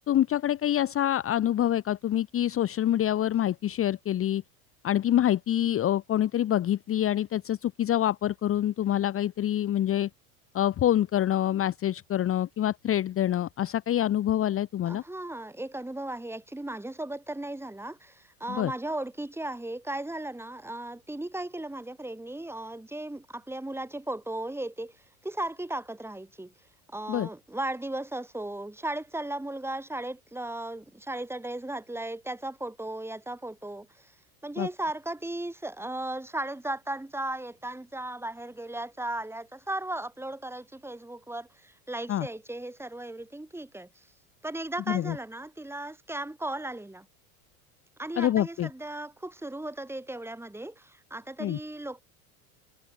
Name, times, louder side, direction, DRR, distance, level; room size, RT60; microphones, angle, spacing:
voice 1, 0.1-4.4 4.8-10.1 10.5-15.0 18.5-18.7 27.1-27.3 34.6-34.7 42.1-42.3 44.9-45.2 48.2-48.7 51.4-51.6, left 11 dB, 30° left, 1.0 m, -26 dB
voice 2, 14.8-26.5 26.9-34.2 34.4-44.1 44.4-47.1 48.0-52.0, right 1 dB, 5° right, 3.5 m, -36 dB
supercardioid pair, 105°, 43 cm